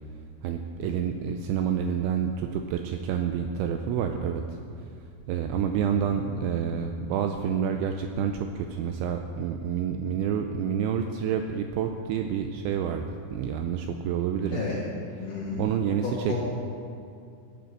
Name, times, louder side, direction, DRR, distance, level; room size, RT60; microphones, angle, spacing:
voice 1, 0.4-4.4 5.3-14.7 15.6-16.4, right 8 dB, 85° right, 5 dB, 2.7 m, -28 dB
voice 2, 15.2-15.6 16.0-16.4, left 5 dB, 55° left, -5 dB, 2.6 m, -32 dB
18.0 x 7.9 x 6.5 m, 2.5 s
omnidirectional pair, 5.9 m